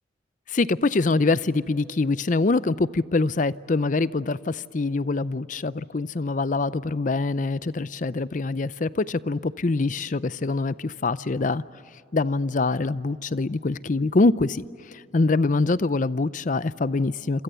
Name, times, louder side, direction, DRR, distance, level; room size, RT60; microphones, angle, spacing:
voice 1, 0.5-11.6 12.1-17.4, left 3 dB, 45° left, 0.6 m, -24 dB
27.5 x 27.0 x 6.9 m
head